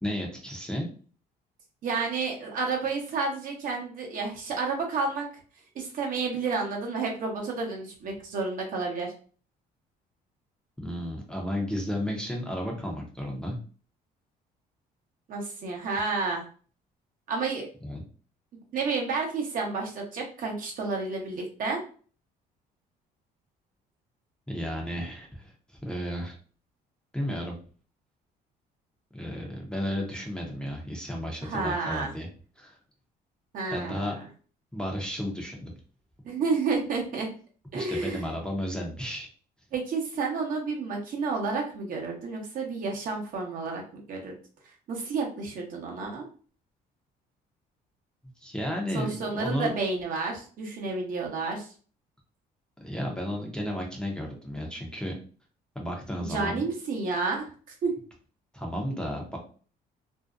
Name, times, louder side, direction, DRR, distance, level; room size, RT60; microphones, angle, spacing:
voice 1, 0.0-0.9 10.8-13.6 17.8-18.0 24.5-26.3 27.1-27.5 29.1-32.3 32.6-32.8 33.7-34.1 34.7-35.7 37.7-39.3 48.4-49.7 52.8-55.1 55.8-56.6 58.5-59.4, equal, 5° left, 0 dB, 0.6 m, -33 dB
voice 2, 1.8-5.2 5.7-9.1 15.3-16.4 17.3-17.7 18.7-21.8 31.4-32.1 33.5-34.1 36.3-37.3 37.7-38.2 39.7-44.4 44.9-46.2 48.9-51.7 56.3-57.5 57.8-57.9, right 4 dB, 55° right, 0 dB, 0.8 m, -30 dB
2.6 x 2.1 x 2.4 m, 0.40 s
cardioid pair, 110°, 17 cm